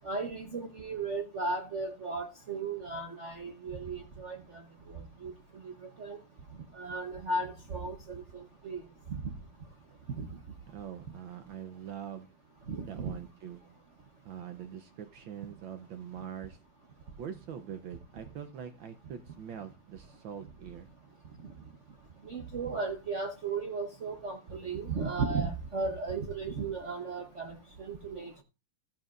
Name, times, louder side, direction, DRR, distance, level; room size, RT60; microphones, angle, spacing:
voice 1, 0.0-4.6 4.9-5.3 5.6-5.7 6.0-6.2 6.7-8.8 9.1-9.3 10.2-10.3 12.7-13.1 22.2-28.4, right 3 dB, 45° right, 1.0 m, -35 dB
voice 2, 10.7-12.3 12.9-13.6 14.2-16.6 17.2-20.9, right 8 dB, 70° right, 1.5 m, -43 dB
14.0 x 10.0 x 2.5 m
omnidirectional pair, 2.4 m